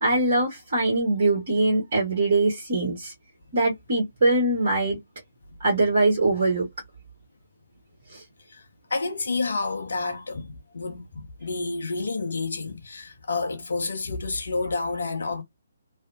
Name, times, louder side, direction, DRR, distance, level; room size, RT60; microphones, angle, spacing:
voice 1, 0.0-3.1 3.5-5.0 5.6-6.7 8.1-8.2, right 2 dB, 45° right, 1.3 m, -22 dB
voice 2, 8.5-15.4, left 3 dB, 60° left, 0.5 m, -30 dB
2.6 x 2.0 x 2.3 m
figure-of-eight pair, 135°, 0 cm